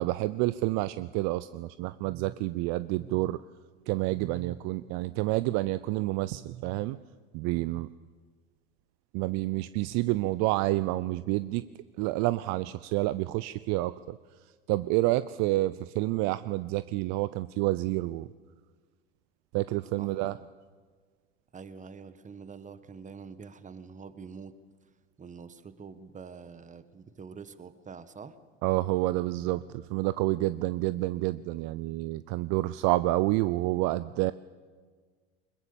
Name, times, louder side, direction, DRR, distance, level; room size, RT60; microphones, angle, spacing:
voice 1, 0.0-3.4 3.9-7.0 7.3-7.9 9.1-11.6 12.0-14.2 14.7-18.3 19.5-20.4 28.6-34.3, right 18 dB, 55° right, 15 dB, 0.6 m, -29 dB
voice 2, 20.0-20.5 21.5-24.5 25.2-28.4, right 5 dB, 25° right, 13 dB, 1.4 m, -46 dB
22.0 x 20.5 x 7.0 m, 1.5 s
hypercardioid pair, 85°, 32 cm